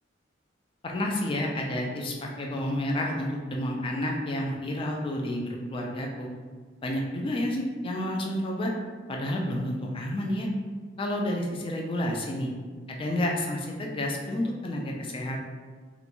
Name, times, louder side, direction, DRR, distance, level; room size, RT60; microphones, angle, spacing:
voice 1, 0.8-6.3 6.8-8.7 9.1-10.5 11.0-12.5 12.9-15.4, left 1 dB, 30° left, 0 dB, 0.3 m, -30 dB
2.5 x 2.2 x 2.9 m, 1.5 s
head